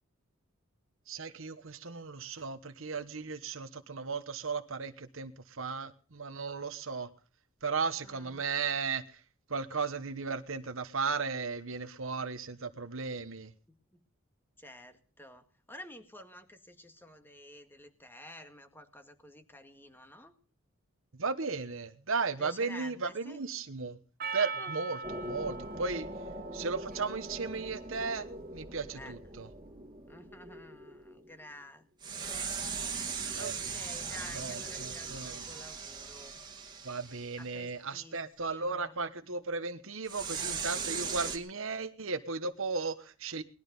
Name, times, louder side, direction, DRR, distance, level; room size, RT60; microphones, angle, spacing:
voice 1, 1.1-7.1 7.6-9.2 9.5-13.5 21.2-24.0 24.3-26.1 26.5-29.5 33.0-33.5 34.3-35.4 36.8-43.4, right 4 dB, 65° right, 1.1 m, -35 dB
voice 2, 8.0-8.4 13.7-14.0 14.6-20.4 22.4-23.4 24.6-24.7 28.9-29.2 30.1-31.9 32.2-36.4 37.4-39.0, left 1 dB, 10° left, 1.9 m, -51 dB
Percussion, 24.2-28.8, right 5 dB, 45° right, 0.9 m, -42 dB
sound 1, 25.0-31.4 32.0-37.5 40.1-41.4, right 4 dB, 20° right, 2.4 m, -40 dB
19.5 x 12.5 x 5.4 m
head